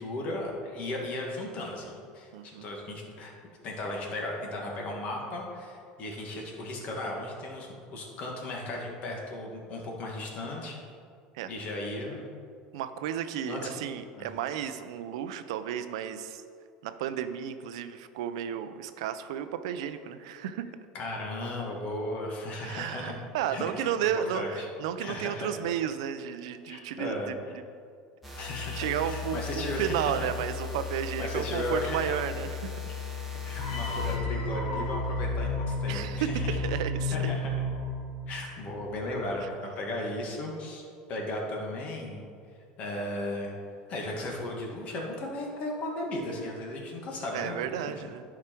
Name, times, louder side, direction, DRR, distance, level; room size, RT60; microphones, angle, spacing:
voice 1, 0.0-3.3 3.6-10.8 11.5-12.2 13.5-13.7 14.2-14.3 20.9-23.1 23.5-23.9 24.3-24.7 25.0-25.5 26.7-27.3 28.3-30.3 31.2-32.1 33.2-36.4 37.1-37.5 38.3-42.2 42.8-43.5 43.9-47.7, left 1 dB, 45° left, 0 dB, 1.8 m, -36 dB
voice 2, 2.3-2.7 11.3-11.5 12.7-16.4 16.8-20.7 22.6-27.4 28.8-32.7 33.9-34.0 35.9-37.3 39.4-39.5 47.3-48.2, right 9 dB, 85° right, 10 dB, 0.5 m, -33 dB
sound 1, 28.2-34.2, left 7 dB, ahead, 1.7 m, -37 dB
sound 2, 33.6-38.7, left 2 dB, 60° left, 1.6 m, -31 dB
11.0 x 4.8 x 4.5 m, 2.3 s
supercardioid pair, 125°, 3 cm